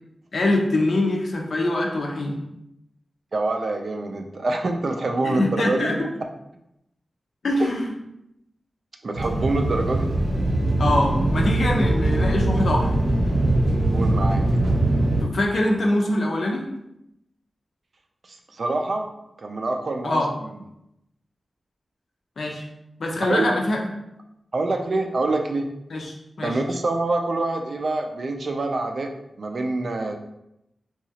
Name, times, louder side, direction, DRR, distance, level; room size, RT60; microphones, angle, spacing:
voice 1, 0.3-2.4 5.2-6.1 7.4-7.9 10.8-12.9 15.2-16.7 20.0-20.3 22.4-22.7 23.0-23.8 25.9-26.6, left 1 dB, 70° left, 0 dB, 0.5 m, -23 dB
voice 2, 3.3-5.9 7.6-7.7 9.0-10.1 13.9-14.4 18.2-19.1 19.4-20.5 23.3-23.5 24.5-25.7 26.4-29.1 29.4-30.1, right 2 dB, 60° right, 4 dB, 0.4 m, -25 dB
sound 1, 9.1-15.2, right 1 dB, 80° right, 0.7 m, -21 dB
2.8 x 2.3 x 2.8 m, 0.84 s
wide cardioid pair, 90°, 0 cm